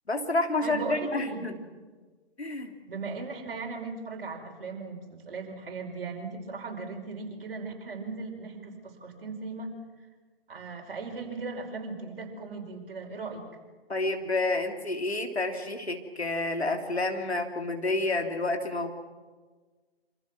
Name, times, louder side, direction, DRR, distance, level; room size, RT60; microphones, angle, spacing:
voice 1, 0.1-1.5 2.4-2.7 13.9-18.9, left 2 dB, 90° left, 4 dB, 3.2 m, -29 dB
voice 2, 0.6-1.5 2.8-9.7 10.5-13.5, right 4 dB, 60° right, 2 dB, 5.5 m, -38 dB
27.0 x 26.0 x 6.1 m, 1.4 s
figure-of-eight pair, 135°, 31 cm